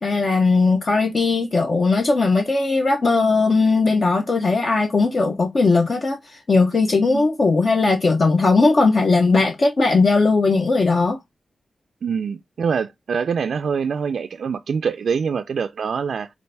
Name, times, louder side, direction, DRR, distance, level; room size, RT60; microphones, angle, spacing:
voice 1, 0.0-11.2, left 3 dB, 40° left, 0.6 m, -18 dB
voice 2, 12.0-16.3, right 6 dB, 80° right, 0.3 m, -24 dB
5.2 x 2.5 x 3.3 m
wide cardioid pair, 175°, 0 cm